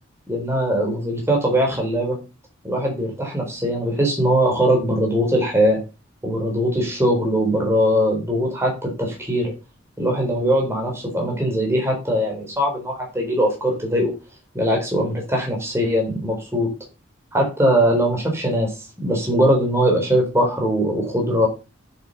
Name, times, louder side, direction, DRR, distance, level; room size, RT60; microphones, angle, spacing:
voice 1, 0.3-2.2 2.6-5.8 6.2-9.5 10.0-14.1 14.5-16.7 17.3-21.5, equal, 15° right, -1 dB, 4.1 m, -21 dB
8.1 x 7.9 x 5.5 m, 0.29 s
head